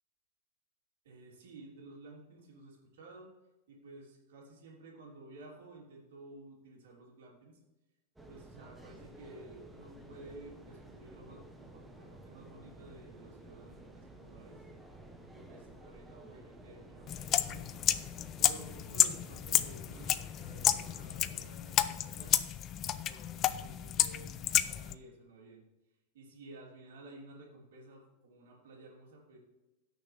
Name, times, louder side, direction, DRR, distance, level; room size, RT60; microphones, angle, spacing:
voice 1, 1.0-3.3 3.7-7.6 8.3-14.6 15.2-17.8 18.4-22.4 23.0-25.6 26.1-29.4, right 2 dB, 90° right, -3 dB, 3.2 m, -53 dB
sound 1, 8.2-21.5, right 1 dB, 5° right, 0.9 m, -53 dB
sound 2, 17.1-24.9, left 11 dB, 30° left, 0.4 m, -31 dB
17.0 x 6.4 x 3.4 m, 1.0 s
supercardioid pair, 160°, 0 cm